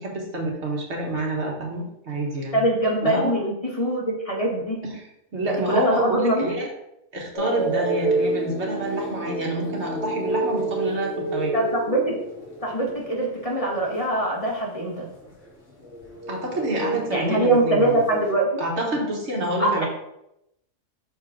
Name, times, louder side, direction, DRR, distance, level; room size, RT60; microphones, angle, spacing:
voice 1, 0.0-2.6 3.0-3.3 4.9-5.1 5.3-6.7 7.1-11.5 16.3-17.9 18.6-19.9, right 1 dB, 60° right, -1 dB, 1.6 m, -27 dB
voice 2, 2.5-4.8 5.5-6.5 11.5-12.1 12.6-15.1 17.1-18.6 19.6-19.9, right 1 dB, 30° left, -3 dB, 1.0 m, -23 dB
sound 1, 7.3-14.6 14.9-18.3, right 2 dB, 65° left, 1.9 m, -29 dB
6.0 x 4.4 x 3.7 m, 0.82 s
omnidirectional pair, 1.4 m